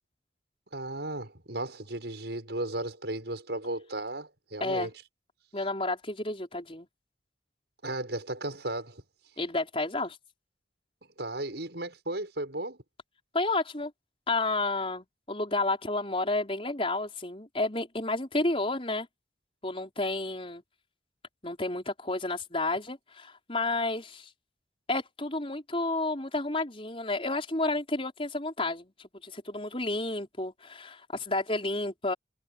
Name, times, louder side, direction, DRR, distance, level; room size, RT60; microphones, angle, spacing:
voice 1, 0.7-4.9 7.8-9.0 11.2-12.8, right 1 dB, 70° right, 6.4 m, -35 dB
voice 2, 4.6-4.9 5.5-6.9 9.4-10.2 13.3-13.9 14.3-19.1 19.6-20.6 21.4-24.3 24.9-28.9 29.2-32.1, left 2 dB, 30° left, 5.1 m, -31 dB
head